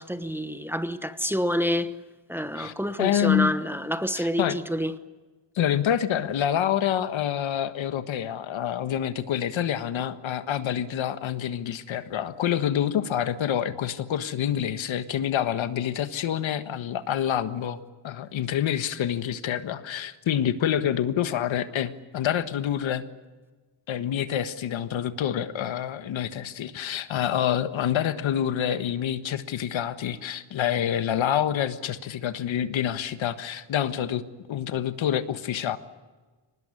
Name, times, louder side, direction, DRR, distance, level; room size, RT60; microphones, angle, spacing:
voice 1, 0.0-2.0 2.3-4.9, equal, 5° right, 1.1 m, -28 dB
voice 2, 3.0-3.5 4.1-4.6 5.5-17.8 18.0-23.0 23.9-35.8, left 10 dB, 80° left, 1.5 m, -27 dB
24.0 x 20.0 x 9.8 m
cardioid pair, 130°, 46 cm